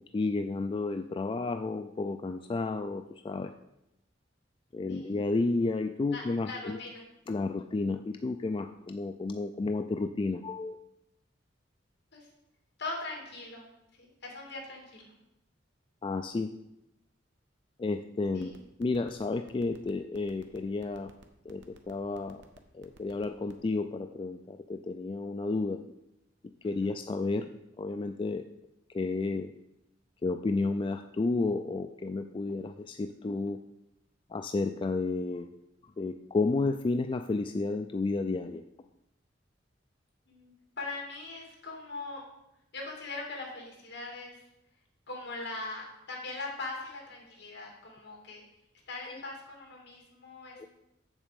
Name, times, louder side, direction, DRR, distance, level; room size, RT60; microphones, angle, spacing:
voice 1, 0.0-3.5 4.7-6.8 7.3-10.8 16.0-16.5 17.8-18.5 18.8-21.1 21.5-22.4 22.7-25.8 26.6-27.5 27.8-28.4 28.9-29.5 30.2-33.6 34.3-35.5 36.0-38.6 49.1-49.2 50.6-50.7, left 3 dB, 25° left, 7 dB, 0.3 m, -31 dB
voice 2, 4.9-5.2 6.1-7.0 12.1-12.3 12.8-13.7 14.0-15.1 18.3-18.6 26.6-26.9 40.3-42.2 42.7-44.4 45.1-48.4 48.9-50.7, left 3 dB, 65° left, 0 dB, 2.7 m, -41 dB
sound 1, 18.4-23.7, right 2 dB, 65° right, 1.0 m, -54 dB
7.3 x 7.1 x 5.1 m, 0.86 s
head